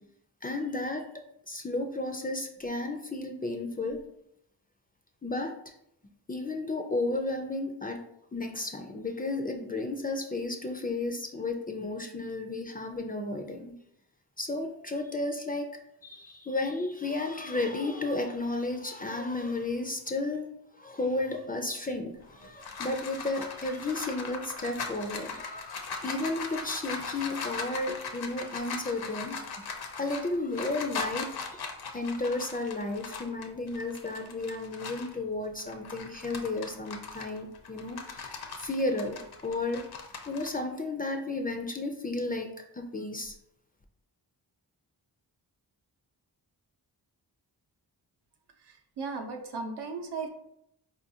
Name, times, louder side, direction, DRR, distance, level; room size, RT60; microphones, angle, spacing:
voice 1, 0.4-4.0 5.2-5.7 6.3-8.0 8.3-13.7 14.4-20.5 20.8-29.7 30.0-39.9 40.3-43.4, left 2 dB, 20° left, 4 dB, 0.4 m, -33 dB
sound 1, 22.2-35.2 35.6-40.5, left 5 dB, 65° left, 0.6 m, -39 dB
voice 2, 49.0-50.3, right 4 dB, 75° right, 4 dB, 0.7 m, -35 dB
4.5 x 2.5 x 2.7 m, 0.76 s
wide cardioid pair, 80°, 41 cm